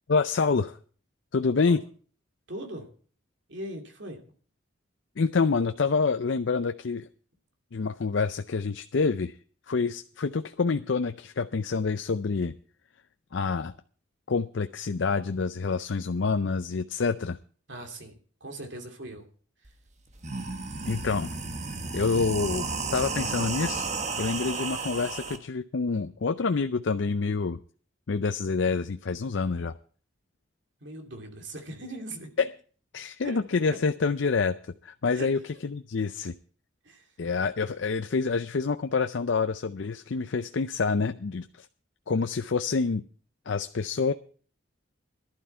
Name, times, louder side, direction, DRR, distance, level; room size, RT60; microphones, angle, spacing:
voice 1, 0.1-0.8 1.3-1.8 5.2-7.1 7.7-9.4 9.7-12.5 13.3-13.7 14.3-17.4 20.9-21.3 21.9-23.9 24.2-27.6 28.1-29.7 32.4-32.5 32.9-34.6 34.8-36.4 37.2-41.7 42.1-43.0 43.5-44.1, left 4 dB, 65° left, 9 dB, 0.5 m, -27 dB
voice 2, 2.5-2.9 3.5-4.2 17.7-19.3 30.8-32.4 33.2-33.4 35.1-35.3 36.8-37.1, right 1 dB, 65° right, 4 dB, 2.6 m, -40 dB
sound 1, 19.7-19.8 20.1-25.4, right 4 dB, 35° right, 1.3 m, -33 dB
15.0 x 12.0 x 4.4 m, 0.43 s
head